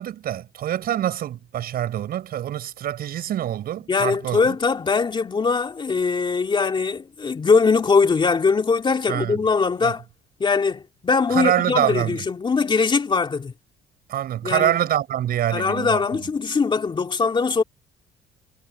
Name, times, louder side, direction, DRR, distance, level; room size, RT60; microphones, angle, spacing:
voice 1, 0.0-4.6 9.1-9.4 9.8-9.9 11.3-12.2 14.1-16.0, right 11 dB, 60° right, 7.2 m, -25 dB
voice 2, 3.9-10.0 10.4-13.5 14.4-14.7 15.5-17.6, left 4 dB, 30° left, 2.9 m, -21 dB
cardioid pair, 110°, 17 cm